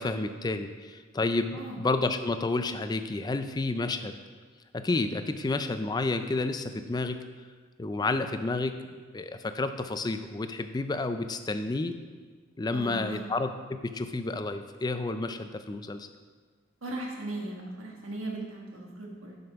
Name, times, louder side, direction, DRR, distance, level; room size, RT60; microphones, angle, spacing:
voice 1, 0.0-4.2 4.7-7.2 7.8-11.9 12.6-13.5 13.8-16.1, left 2 dB, 20° left, 9 dB, 0.3 m, -30 dB
voice 2, 12.7-13.2 16.8-19.4, right 2 dB, 85° right, 0 dB, 1.6 m, -38 dB
7.6 x 5.3 x 5.8 m, 1.5 s
head